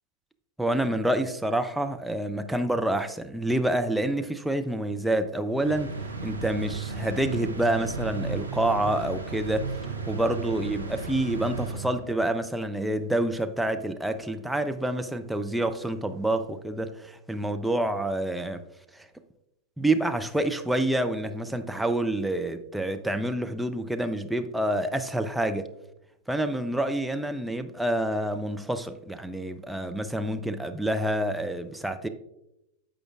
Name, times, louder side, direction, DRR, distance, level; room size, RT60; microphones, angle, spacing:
voice 1, 0.6-5.9 6.2-9.7 10.1-18.6 18.9-19.1 19.8-25.7 26.3-32.1, right 1 dB, 5° right, 0.5 m, -28 dB
sound 1, 5.6-12.3, right 4 dB, 80° right, 0.9 m, -34 dB
14.5 x 5.1 x 2.3 m
figure-of-eight pair, 90°, 0 cm